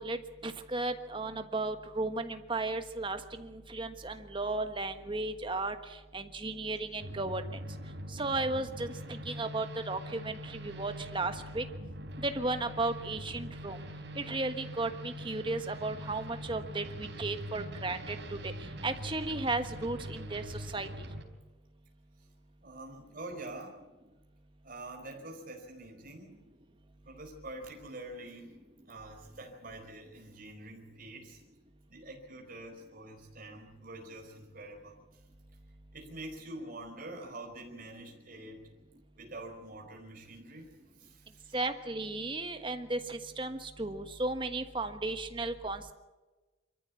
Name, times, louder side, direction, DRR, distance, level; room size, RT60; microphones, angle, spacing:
voice 1, 0.0-5.8 6.1-7.4 8.1-11.6 12.2-13.8 14.1-18.5 18.8-20.9 41.5-45.9, right 2 dB, 25° right, 8 dB, 1.4 m, -35 dB
sound 1, 7.0-21.2, equal, 65° right, 4.5 m, -43 dB
voice 2, 22.6-23.8 24.6-26.4 27.0-31.4 31.9-35.0 35.9-38.6 39.1-40.7 41.0-41.6, right 2 dB, 45° right, 1 dB, 4.8 m, -46 dB
25.0 x 14.0 x 8.4 m, 1.2 s
head